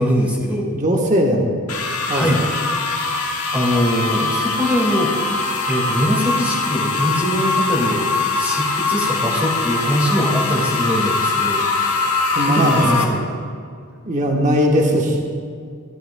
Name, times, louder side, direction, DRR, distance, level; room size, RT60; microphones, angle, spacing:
voice 1, 0.0-0.7 2.1-2.4 3.1-5.2 5.7-13.4, equal, 5° right, -4 dB, 2.0 m, -22 dB
voice 2, 0.7-1.5 2.1-2.3 12.3-13.1 14.0-15.2, equal, 35° right, 0 dB, 1.2 m, -18 dB
sound 1, 1.7-13.0, left 3 dB, 80° left, 1.4 m, -22 dB
16.5 x 13.5 x 2.2 m, 2.3 s
head